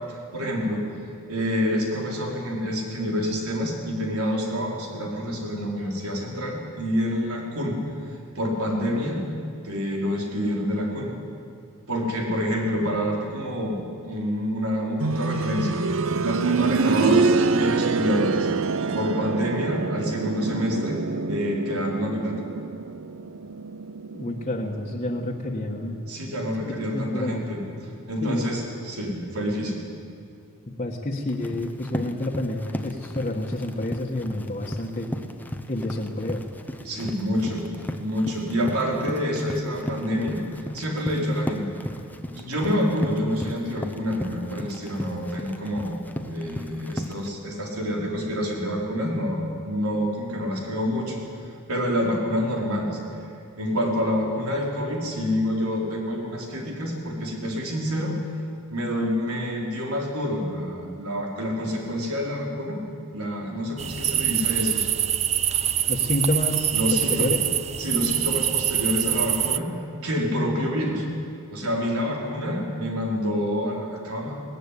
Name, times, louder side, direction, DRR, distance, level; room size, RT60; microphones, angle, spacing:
voice 1, 0.1-0.8 1.3-7.8 8.3-9.2 9.6-11.1 11.9-18.5 18.9-21.0 21.3-22.4 26.1-27.6 28.1-29.8 36.8-37.6 38.0-40.4 40.7-41.7 42.3-46.0 46.3-53.0 53.6-58.2 58.7-62.8 63.1-64.8 66.7-67.4 67.8-71.1 71.5-74.4, equal, 90° right, -1 dB, 4.2 m, -27 dB
sound 1, 15.0-25.8 27.1-27.2, right 4 dB, 65° right, 0.7 m, -26 dB
voice 2, 24.1-26.0 26.7-27.5 28.2-28.7 30.8-35.1 35.7-36.4 65.9-67.4, left 1 dB, 30° left, -3 dB, 1.5 m, -29 dB
Run, 31.3-47.3, equal, 10° left, 0.9 m, -36 dB
sound 2, 63.8-69.6, right 10 dB, 30° right, 0.5 m, -25 dB
19.0 x 14.0 x 10.0 m, 2.4 s
head